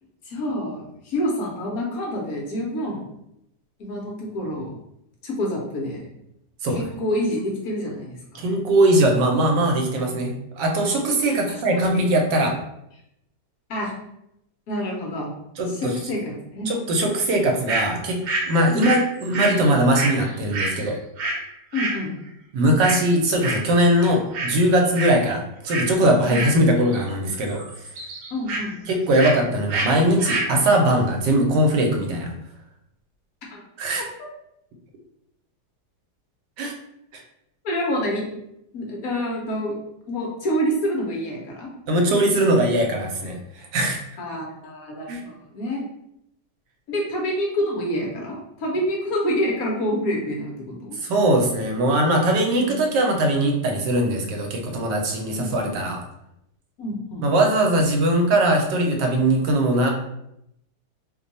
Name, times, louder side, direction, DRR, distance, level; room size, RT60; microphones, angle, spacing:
voice 1, 0.2-3.0 3.8-4.7 5.2-6.1 6.7-8.4 11.2-11.8 13.7-13.9 14.7-15.3 15.7-16.7 18.7-18.9 21.7-22.1 26.3-26.4 28.3-28.7 33.5-33.6 34.0-34.1 37.6-38.3 38.7-39.7 40.1-41.7 44.2-45.8 46.9-50.9 52.6-52.8 55.3-55.6 56.8-57.3, equal, 65° left, -2 dB, 1.2 m, -27 dB
voice 2, 8.3-12.5 15.6-15.9 16.7-18.2 18.5-20.9 22.5-27.6 28.9-32.3 33.8-34.0 36.6-36.7 37.1-37.2 41.9-44.0 45.1-45.2 51.0-56.0 57.2-59.9, right 1 dB, 85° right, 2 dB, 1.3 m, -20 dB
sound 1, 17.7-17.9 18.2-21.4 21.7-22.0 22.8-23.1 23.4-23.7 24.0-24.5 24.8-25.2 25.7-25.9 26.3-27.1 27.3-28.6 29.2-29.4 29.7-29.9 30.2-30.5, right 2 dB, 65° right, 1.2 m, -27 dB
3.1 x 2.2 x 3.9 m, 0.81 s
omnidirectional pair, 1.8 m